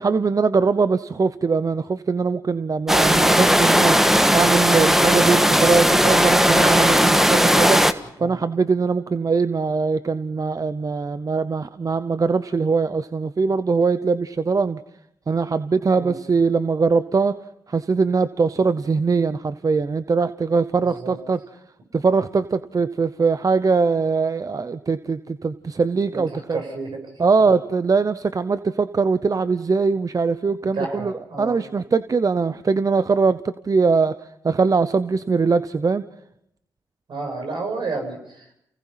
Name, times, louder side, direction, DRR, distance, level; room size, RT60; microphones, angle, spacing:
voice 1, 0.0-3.9 4.3-7.8 8.2-14.8 15.3-17.4 17.7-21.4 21.9-26.6 27.2-31.1 31.4-34.2 34.4-36.0, right 4 dB, 45° right, 13 dB, 0.8 m, -21 dB
sound 1, 2.9-7.9, equal, 5° right, 1.6 m, -17 dB
voice 2, 20.8-21.2 26.1-27.6 30.7-31.6 37.1-38.6, right 3 dB, 65° right, 3 dB, 7.3 m, -31 dB
29.0 x 18.0 x 5.8 m, 0.78 s
supercardioid pair, 45°, 9 cm